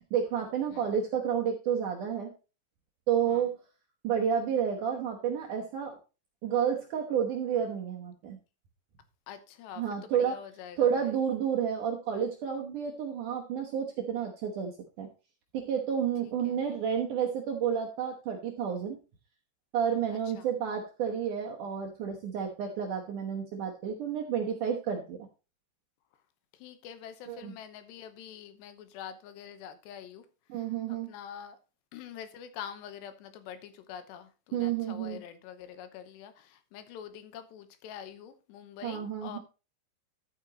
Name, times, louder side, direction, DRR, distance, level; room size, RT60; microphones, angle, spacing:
voice 1, 0.1-2.3 3.1-3.6 4.0-6.0 6.4-8.4 9.8-10.4 10.8-14.7 15.0-15.1 15.5-19.0 19.7-25.3 27.3-27.5 30.5-31.1 34.5-35.2 38.8-39.4, right 8 dB, 70° right, 2.0 m, -30 dB
voice 2, 9.3-11.2 16.2-16.6 20.1-20.5 26.5-30.3 30.5-31.6 31.9-39.4, left 9 dB, 80° left, 3.1 m, -46 dB
12.0 x 8.8 x 2.9 m
omnidirectional pair, 5.1 m